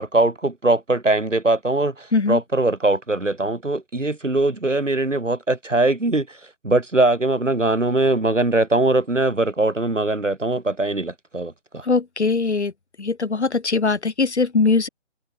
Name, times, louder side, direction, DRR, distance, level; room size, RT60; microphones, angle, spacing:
voice 1, 0.0-6.4 6.6-11.8, right 2 dB, 90° right, 6.3 m, -21 dB
voice 2, 11.8-12.7 13.0-14.9, left 4 dB, 65° left, 7.0 m, -21 dB
figure-of-eight pair, 155°, 36 cm